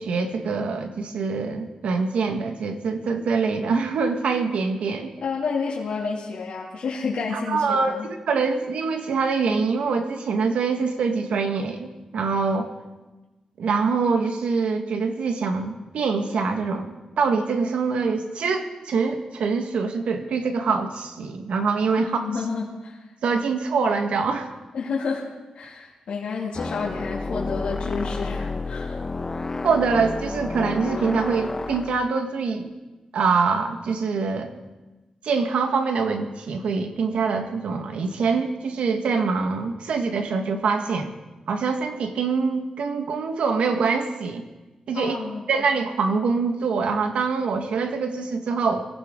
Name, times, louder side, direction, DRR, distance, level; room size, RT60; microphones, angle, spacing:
voice 1, 0.0-5.1 7.3-12.7 13.6-22.3 23.2-24.5 29.6-32.7 33.1-34.5 35.2-41.1 41.5-44.4 44.9-45.2 45.5-48.9, right 4 dB, 90° right, 5 dB, 1.7 m, -24 dB
voice 2, 5.2-8.0 22.0-23.0 24.7-25.3 25.5-29.0 44.9-45.4, left 5 dB, 80° left, -5 dB, 2.6 m, -30 dB
sound 1, 26.5-31.9, left 3 dB, 25° left, 0.8 m, -30 dB
23.5 x 16.0 x 3.9 m, 1.1 s
wide cardioid pair, 110°, 2 cm